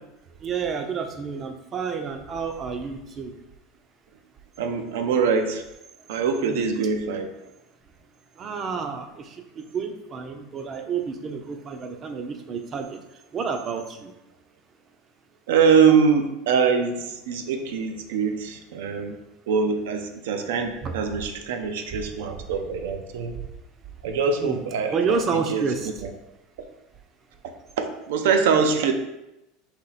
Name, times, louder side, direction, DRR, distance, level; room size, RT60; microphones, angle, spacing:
voice 1, 0.4-3.3 6.5-6.6 8.4-9.1 9.7-13.0 13.3-14.1 20.8-20.9 24.4-24.6 24.9-25.9, right 5 dB, 30° right, 6 dB, 0.5 m, -29 dB
voice 2, 4.6-5.6 6.1-7.3 15.5-19.2 19.5-23.3 24.0-25.7 26.0-26.1 27.8-28.9, right 6 dB, 85° right, 6 dB, 0.6 m, -23 dB
4.4 x 2.9 x 4.0 m, 0.91 s
supercardioid pair, 145°, 0 cm